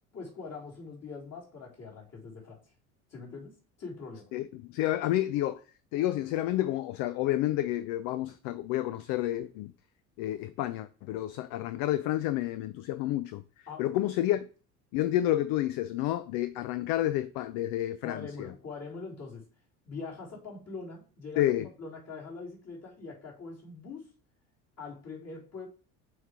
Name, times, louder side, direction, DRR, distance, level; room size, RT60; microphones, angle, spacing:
voice 1, 0.1-2.6 3.1-4.3 13.7-13.9 18.0-19.5 19.9-21.5 21.8-24.1 24.8-25.7, left 4 dB, 35° left, 3.5 m, -43 dB
voice 2, 4.3-5.6 5.9-9.7 10.2-13.4 13.8-14.5 14.9-18.5 21.4-21.7, left 14 dB, 50° left, 0.5 m, -30 dB
6.4 x 3.2 x 4.8 m
figure-of-eight pair, 60°, 44 cm